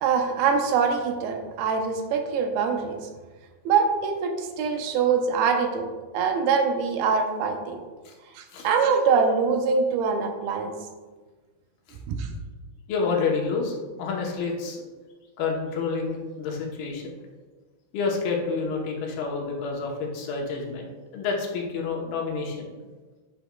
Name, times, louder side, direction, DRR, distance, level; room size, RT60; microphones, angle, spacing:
voice 1, 0.0-3.0 3.7-5.9 6.1-7.8 8.4-10.7 12.1-12.3, right 5 dB, 85° right, 4 dB, 2.6 m, -24 dB
voice 2, 12.9-14.8 15.4-17.1 17.9-20.9 21.1-22.7, left 4 dB, 85° left, 0 dB, 2.9 m, -28 dB
9.9 x 5.7 x 2.3 m, 1.3 s
omnidirectional pair, 4.3 m